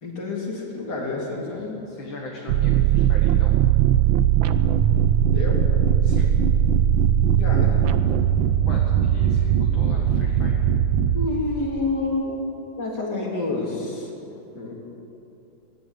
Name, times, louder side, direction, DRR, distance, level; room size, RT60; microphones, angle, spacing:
voice 1, 0.0-1.8 5.3-5.6 7.4-7.8 11.1-12.4 12.8-14.1 14.5-14.7, left 2 dB, 55° left, -2 dB, 4.0 m, -28 dB
voice 2, 1.5-3.6 6.0-6.4 8.6-10.6 14.3-14.4, left 3 dB, 75° left, -1 dB, 2.8 m, -39 dB
sound 1, 2.5-11.3, right 9 dB, 80° right, 1.5 m, -19 dB
20.0 x 17.0 x 8.3 m, 2.8 s
omnidirectional pair, 2.2 m